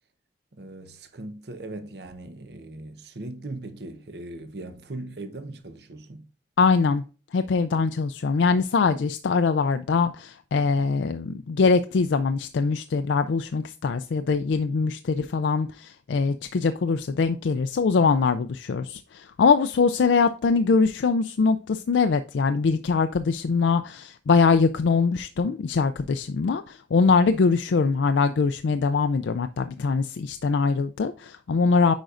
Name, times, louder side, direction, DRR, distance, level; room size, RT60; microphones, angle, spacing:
voice 1, 0.5-6.3, right 2 dB, 65° right, 0.9 m, -39 dB
voice 2, 6.6-7.0 7.3-31.9, left 4 dB, 85° left, 0.4 m, -22 dB
9.0 x 5.2 x 2.5 m
head